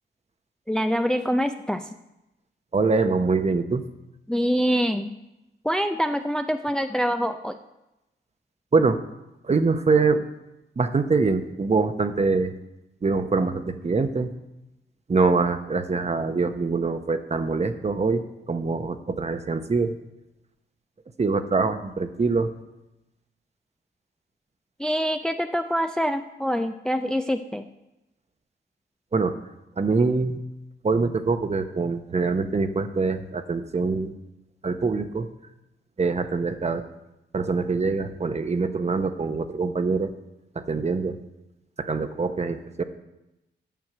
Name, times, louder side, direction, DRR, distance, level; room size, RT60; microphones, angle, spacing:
voice 1, 0.7-1.9 4.3-5.2 5.6-7.6 24.8-27.6, equal, 5° left, 7 dB, 0.5 m, -25 dB
voice 2, 2.7-3.8 8.7-9.0 9.4-10.2 10.8-12.5 13.0-14.3 15.1-20.0 21.2-22.5 29.1-29.3 29.8-30.4 30.8-34.1 34.6-35.3 36.0-36.8 37.3-40.1 40.5-41.2 41.8-42.8, right 4 dB, 35° right, 9 dB, 0.9 m, -24 dB
9.2 x 6.4 x 7.5 m, 0.93 s
cardioid pair, 75°, 19 cm